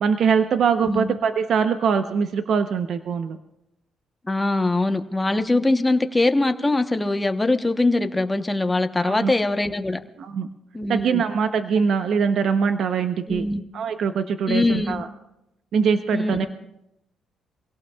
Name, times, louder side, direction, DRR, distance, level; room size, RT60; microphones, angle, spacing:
voice 1, 0.0-3.4 9.0-9.3 10.2-10.5 10.9-13.5 13.7-15.1 15.7-16.5, right 6 dB, 60° right, 8 dB, 0.7 m, -22 dB
voice 2, 4.2-10.0 10.7-11.2 13.3-13.6 14.5-15.0 16.1-16.5, left 2 dB, 15° left, 8 dB, 0.9 m, -22 dB
25.5 x 17.5 x 2.3 m, 0.87 s
cardioid pair, 110°, 0 cm